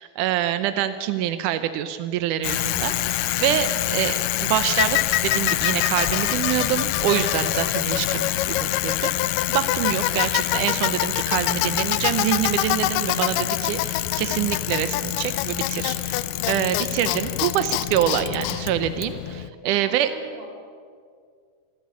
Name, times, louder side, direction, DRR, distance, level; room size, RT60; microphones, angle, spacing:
voice 1, 0.0-20.1, right 11 dB, 80° right, 11 dB, 1.8 m, -26 dB
Bicycle, 2.4-19.5, left 14 dB, 85° left, 2.7 m, -25 dB
voice 2, 19.6-20.5, right 3 dB, 35° right, 0 dB, 5.2 m, -43 dB
27.0 x 10.5 x 9.6 m, 2.1 s
omnidirectional pair, 4.5 m